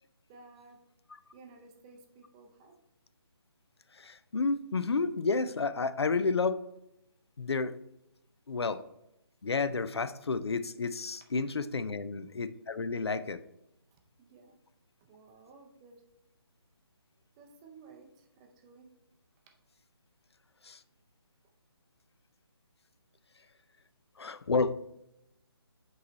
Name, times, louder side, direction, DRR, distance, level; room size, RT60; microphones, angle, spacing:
voice 1, 0.3-0.8 1.3-2.7 11.8-12.1 13.9-14.6 15.0-16.0 17.4-18.9, right 4 dB, 15° right, 2 dB, 0.5 m, -55 dB
voice 2, 3.9-6.6 7.4-7.7 8.5-8.8 9.4-13.4 20.6-20.8 24.2-24.7, left 4 dB, 80° left, 14 dB, 0.5 m, -31 dB
7.7 x 3.2 x 4.0 m, 0.83 s
figure-of-eight pair, 155°, 13 cm